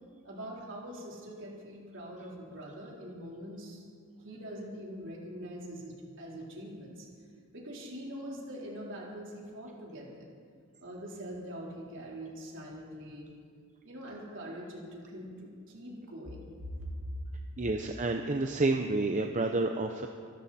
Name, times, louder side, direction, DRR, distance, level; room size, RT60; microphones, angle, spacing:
voice 1, 0.2-3.8 4.2-7.1 7.5-10.3 10.8-13.3 13.8-16.9, equal, 55° right, -3 dB, 4.0 m, -43 dB
voice 2, 17.6-20.1, right 2 dB, 35° right, 4 dB, 0.7 m, -29 dB
25.5 x 13.0 x 4.3 m, 2.2 s
head